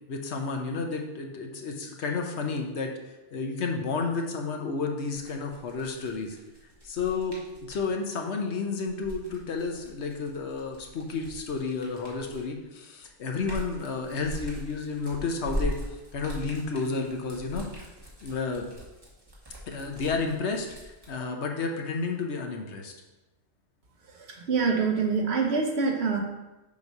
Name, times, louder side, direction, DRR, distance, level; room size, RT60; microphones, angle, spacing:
voice 1, 0.1-2.9 3.3-6.4 6.8-7.4 7.7-15.8 16.1-17.7 18.2-18.7 19.7-22.9, left 4 dB, 70° left, 3 dB, 1.1 m, -31 dB
sound 1, 5.1-7.9 8.8-12.6 13.0-21.1, equal, 20° right, 1.4 m, -40 dB
voice 2, 24.2-26.2, right 5 dB, 65° right, 2 dB, 1.1 m, -25 dB
7.2 x 3.1 x 5.3 m, 1.0 s
omnidirectional pair, 1.2 m